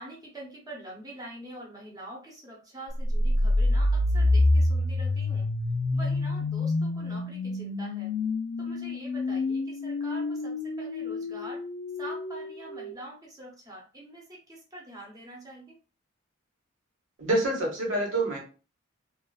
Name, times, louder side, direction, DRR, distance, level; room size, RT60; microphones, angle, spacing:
voice 1, 0.0-5.5 5.9-8.1 8.6-11.6 12.0-15.7, right 1 dB, 20° right, -2 dB, 0.8 m, -45 dB
sound 1, 3.0-12.9, left 2 dB, 75° left, 0.4 m, -27 dB
voice 2, 17.2-18.4, right 1 dB, 80° right, -2 dB, 1.2 m, -26 dB
2.4 x 2.3 x 2.3 m, 0.35 s
head